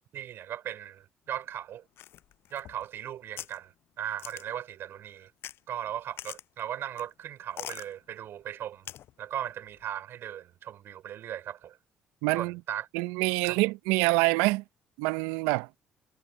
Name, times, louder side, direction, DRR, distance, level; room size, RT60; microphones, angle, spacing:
voice 1, 0.1-1.8 2.5-5.3 5.7-8.9 9.2-11.8 12.3-12.9 13.4-13.6, right 11 dB, 60° right, 6.4 m, -38 dB
sound 1, 2.0-3.0 3.4-3.6 4.2-4.6 5.4-5.6 5.9-6.0 6.2-6.6 7.0-7.1 7.6-7.9 8.8-9.1 9.5-9.6, left 12 dB, 65° left, 7.7 m, -42 dB
voice 2, 12.2-12.6 12.9-14.6 15.0-15.7, right 23 dB, 80° right, 1.2 m, -26 dB
hypercardioid pair, 50°, 4 cm